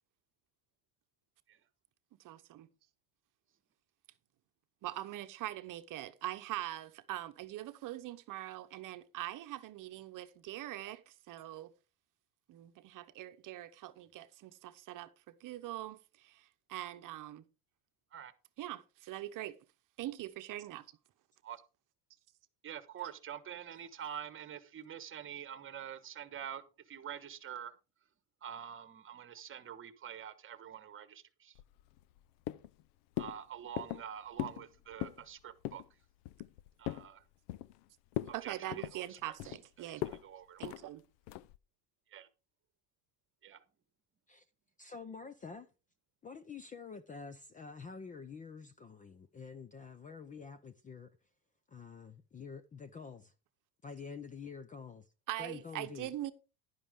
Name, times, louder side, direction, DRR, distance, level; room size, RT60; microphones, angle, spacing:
voice 1, 2.2-2.7 4.8-11.7 12.5-17.4 18.6-19.6 20.0-20.8 38.3-40.0 40.6-41.0 55.3-56.3, right 14 dB, 45° right, 0.9 m, -43 dB
voice 2, 22.6-27.7 28.4-31.6 33.2-35.8 36.8-37.2 38.3-39.6 39.9-40.7 42.1-42.3 43.4-43.6, right 9 dB, 30° right, 1.3 m, -46 dB
sound 1, 31.6-32.2 32.5-32.8 33.2-33.4 33.8-34.1 34.4-34.7 34.9-35.2 35.6-35.9 36.3-37.1 37.5-37.8 38.1-38.4 38.7-39.6 40.0-40.2 40.6-40.8 41.3-41.6, left 14 dB, 75° left, 0.7 m, -39 dB
voice 3, 44.8-45.7 46.2-51.1 51.7-53.3 53.8-55.1 55.4-56.1, left 5 dB, 20° left, 0.5 m, -48 dB
11.5 x 10.0 x 3.7 m
cardioid pair, 140°, 43 cm